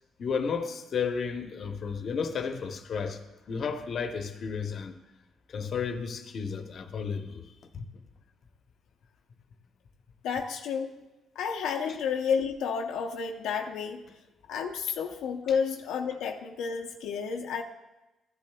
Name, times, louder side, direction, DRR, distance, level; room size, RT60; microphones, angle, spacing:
voice 1, 0.2-3.2 3.5-5.0 5.5-7.9 11.8-12.0, left 6 dB, 55° left, 0.8 m, -33 dB
voice 2, 10.2-10.9 11.4-14.0 14.5-17.6, left 6 dB, 90° left, 0.6 m, -31 dB
15.0 x 10.5 x 2.3 m
cardioid pair, 90°, 0 cm